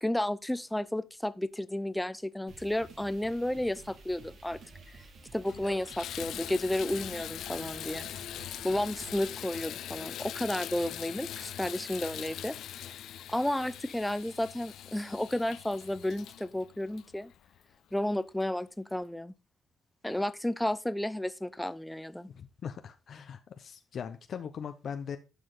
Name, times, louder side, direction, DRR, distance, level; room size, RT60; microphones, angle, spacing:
voice 1, 0.0-4.6 5.3-8.1 8.6-12.5 13.3-17.3 17.9-19.3 20.0-22.3, left 1 dB, 5° left, 0.6 m, -32 dB
sound 1, 2.5-9.3, right 3 dB, 65° right, 2.4 m, -52 dB
Water tap faucet / Bathtub (filling or washing), 4.8-4.9 5.3-17.7 18.4-18.5 19.0-19.1, left 11 dB, 75° left, 0.3 m, -42 dB
voice 2, 22.3-25.2, left 7 dB, 60° left, 0.8 m, -40 dB
11.5 x 5.0 x 3.9 m
cardioid pair, 90°, 0 cm